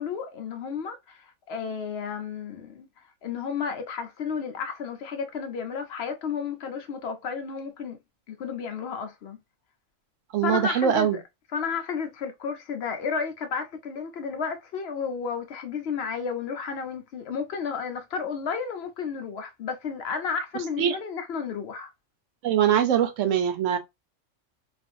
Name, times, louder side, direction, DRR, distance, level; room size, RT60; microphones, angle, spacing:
voice 1, 0.0-2.9 3.2-8.0 8.3-9.4 10.4-11.2 11.5-21.9, left 6 dB, 65° left, 0.7 m, -32 dB
voice 2, 10.3-11.2 20.8-21.0 22.4-23.8, right 9 dB, 85° right, 0.9 m, -22 dB
2.5 x 2.4 x 2.5 m
omnidirectional pair, 1.3 m